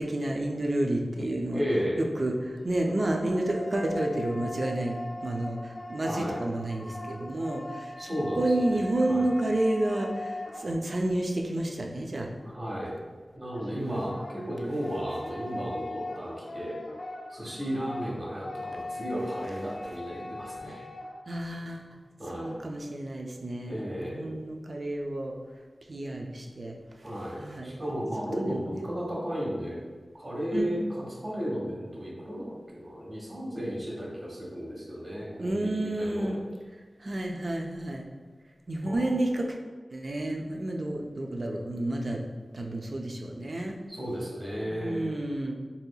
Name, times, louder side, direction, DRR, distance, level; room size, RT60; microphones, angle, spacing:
voice 1, 0.0-1.6 2.0-12.3 13.7-14.1 21.3-21.9 22.3-25.4 25.9-27.8 28.3-28.9 30.5-30.8 35.4-36.4 37.0-38.1 38.7-39.6 39.9-42.2 42.5-43.8 44.6-45.5, right 1 dB, 55° right, 1 dB, 0.4 m, -30 dB
voice 2, 1.5-2.1 6.1-6.4 8.0-9.3 12.5-12.9 13.3-16.8 17.3-20.8 22.2-22.5 23.7-24.3 27.0-29.8 30.1-30.8 31.2-36.4 38.8-39.1 43.9-45.0, equal, 40° right, -5 dB, 1.1 m, -34 dB
sound 1, 2.5-11.2 13.5-21.3, left 1 dB, 50° left, 0.5 m, -40 dB
4.1 x 2.7 x 2.3 m, 1.4 s
wide cardioid pair, 65°, 0 cm